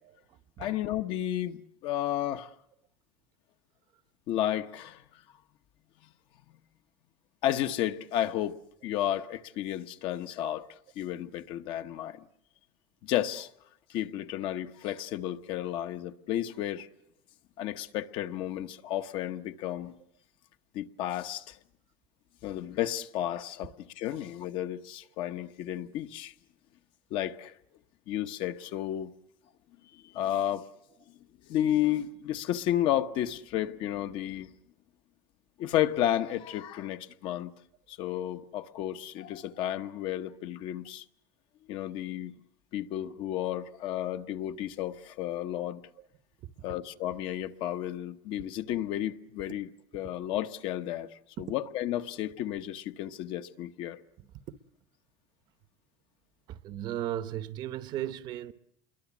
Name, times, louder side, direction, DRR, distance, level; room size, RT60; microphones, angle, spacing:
voice 1, 0.6-2.5 4.3-5.2 7.4-8.6 8.8-12.3 13.0-13.5 13.9-16.9 17.6-19.9 20.7-21.6 22.4-26.3 27.1-27.5 28.1-29.1 29.9-30.7 31.5-34.5 35.6-37.5 37.9-41.0 41.7-42.3 42.7-45.8 46.6-54.0, left 12 dB, 50° left, 1.1 m, -32 dB
voice 2, 56.5-58.5, right 12 dB, 45° right, 0.9 m, -35 dB
27.0 x 22.5 x 7.2 m
cardioid pair, 170°, 11 cm